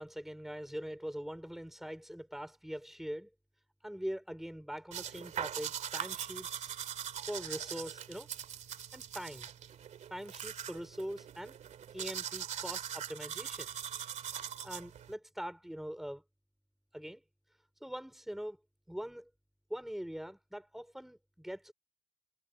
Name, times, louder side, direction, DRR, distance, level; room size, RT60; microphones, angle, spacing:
voice 1, 0.0-3.3 3.8-6.7 7.3-8.3 8.9-9.5 10.1-11.6 11.9-13.7 14.6-16.2 16.9-17.2 17.8-18.6 18.9-19.3 19.7-21.7, equal, ahead, 5.1 m, -42 dB
sound 1, 4.9-15.1, right 9 dB, 70° right, 2.4 m, -41 dB
wide cardioid pair, 160°, 13 cm